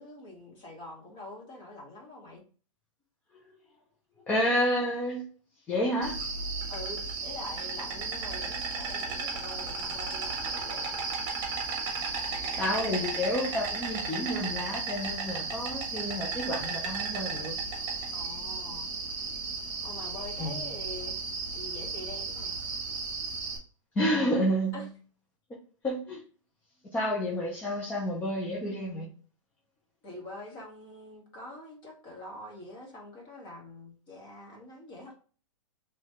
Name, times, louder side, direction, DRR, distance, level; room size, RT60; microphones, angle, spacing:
voice 1, 0.0-2.4 6.7-11.2 18.1-18.9 19.8-21.2 21.5-22.5 24.7-24.9 30.0-35.1, left 2 dB, 30° left, 1.6 m, -45 dB
voice 2, 4.3-5.3 5.7-6.2 12.6-17.6 20.4-20.6 24.0-24.9 25.8-26.2 26.9-29.1, equal, 10° left, 0.4 m, -30 dB
Insect, 6.0-23.6, right 4 dB, 25° right, 1.2 m, -34 dB
4.0 x 3.2 x 3.0 m
hypercardioid pair, 160°, 17 cm